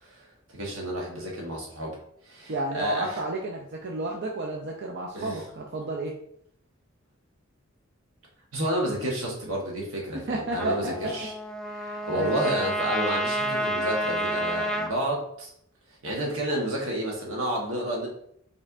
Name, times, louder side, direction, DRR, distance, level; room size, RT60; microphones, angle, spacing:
voice 1, 0.0-2.0 2.2-3.2 5.1-5.4 8.5-11.3 12.0-15.5 16.0-18.1, right 1 dB, 85° right, -2 dB, 1.3 m, -30 dB
voice 2, 2.5-6.2 10.3-11.1 11.6-12.4, right 2 dB, 60° right, -1 dB, 0.5 m, -32 dB
Trumpet, 10.5-14.9, equal, 5° left, 0.4 m, -29 dB
5.2 x 3.3 x 2.6 m, 0.69 s
head